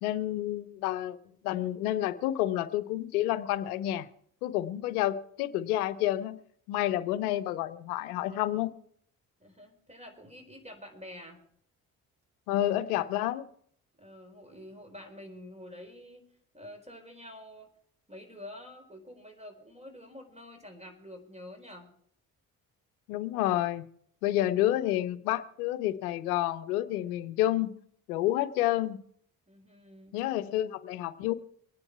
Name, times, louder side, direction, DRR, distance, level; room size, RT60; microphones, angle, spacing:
voice 1, 0.0-1.2 1.4-4.1 4.4-6.4 6.7-8.7 12.5-13.5 23.1-23.9 24.2-27.7 28.1-29.0 30.1-31.3, left 14 dB, 85° left, 0.7 m, -29 dB
voice 2, 9.4-11.4 14.0-16.2 16.5-17.7 18.1-21.9 29.5-30.3, left 1 dB, 15° right, 4.4 m, -48 dB
24.0 x 9.8 x 4.6 m
hypercardioid pair, 45°, 43 cm